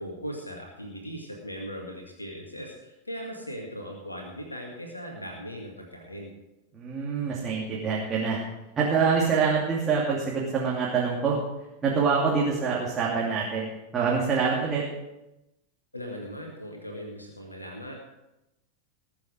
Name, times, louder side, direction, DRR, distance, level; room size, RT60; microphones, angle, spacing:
voice 1, 0.0-6.3 15.9-17.9, equal, 85° left, 1 dB, 2.0 m, -39 dB
voice 2, 6.7-8.4 8.8-11.4 11.8-13.7 13.9-14.8, right 5 dB, 20° right, -5 dB, 2.7 m, -25 dB
20.0 x 7.2 x 5.1 m, 0.94 s
figure-of-eight pair, 90°, 0 cm